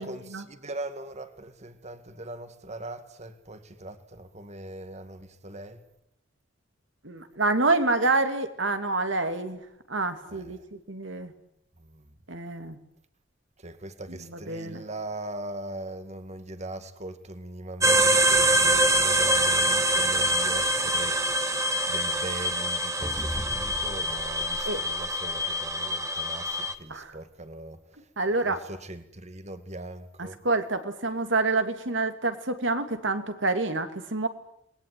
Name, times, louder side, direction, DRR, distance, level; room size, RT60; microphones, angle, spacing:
voice 1, 0.0-5.8 10.3-10.6 11.8-12.1 13.6-30.4, right 1 dB, 35° right, 2.2 m, -40 dB
voice 2, 7.0-9.6 9.9-11.3 12.3-12.8 14.1-14.2 14.5-14.8 24.6-24.8 26.9-27.1 28.2-28.6 30.2-34.3, right 3 dB, 70° right, 2.8 m, -27 dB
sound 1, 17.8-26.7, right 1 dB, 15° right, 1.7 m, -25 dB
sound 2, 23.0-25.7, equal, ahead, 1.8 m, -38 dB
28.0 x 21.5 x 9.6 m
head